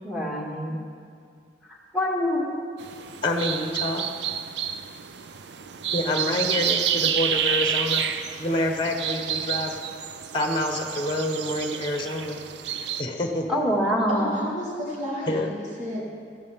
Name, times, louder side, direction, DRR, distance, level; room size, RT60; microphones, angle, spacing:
voice 1, 0.0-0.7 1.9-2.4 13.5-14.4, equal, ahead, -4 dB, 2.0 m, -25 dB
sound 1, 2.8-13.0, right 8 dB, 70° right, 0.6 m, -29 dB
voice 2, 3.2-4.1 5.9-9.8 10.3-12.4 13.0-13.6 15.3-15.5, left 1 dB, 25° left, 3 dB, 1.1 m, -27 dB
voice 3, 14.1-16.0, equal, 45° right, -7 dB, 3.8 m, -31 dB
18.5 x 14.5 x 3.7 m, 2.3 s
head